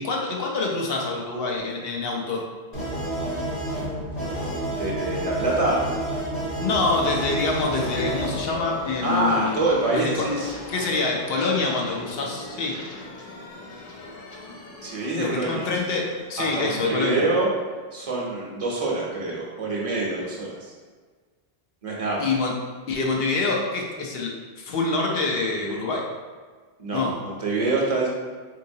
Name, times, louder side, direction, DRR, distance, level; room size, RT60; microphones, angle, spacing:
voice 1, 0.0-2.5 6.6-9.7 9.9-10.3 10.7-12.8 15.2-17.3 22.2-22.6 22.9-26.1 26.9-27.1, left 3 dB, 70° left, -1 dB, 0.8 m, -26 dB
sound 1, 2.7-8.4, right 1 dB, 90° left, 1.4 m, -29 dB
voice 2, 4.8-5.9 9.0-10.5 14.8-15.7 16.4-17.5 17.9-20.7 21.8-22.3 26.8-28.1, right 2 dB, 40° right, -4 dB, 0.8 m, -25 dB
sound 2, 6.3-17.8, left 2 dB, 50° left, 0.5 m, -40 dB
3.8 x 2.8 x 2.6 m, 1.5 s
omnidirectional pair, 1.0 m